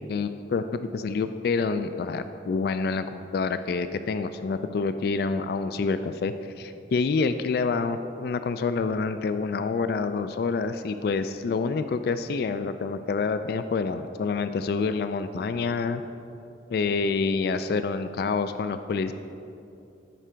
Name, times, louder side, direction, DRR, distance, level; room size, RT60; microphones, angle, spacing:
voice 1, 0.1-16.0 16.7-19.1, left 4 dB, 60° left, 10 dB, 0.3 m, -27 dB
10.0 x 4.6 x 5.0 m, 2.6 s
head